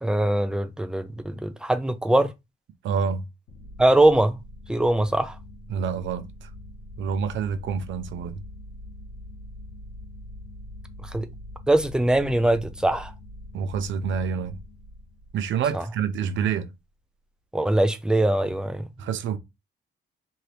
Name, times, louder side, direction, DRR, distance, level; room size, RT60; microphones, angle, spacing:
voice 1, 0.0-2.3 3.8-4.4 4.7-5.4 11.0-11.3 11.7-13.1 15.7-15.8 17.5-18.8, right 1 dB, 5° right, 0.4 m, -22 dB
voice 2, 2.8-3.2 5.7-6.5 7.0-8.4 13.5-14.6 15.3-16.7 19.0-19.4, right 7 dB, 70° right, 0.6 m, -27 dB
sound 1, 3.5-16.3, left 1 dB, 85° left, 0.7 m, -43 dB
2.8 x 2.7 x 3.2 m
cardioid pair, 90°, 20 cm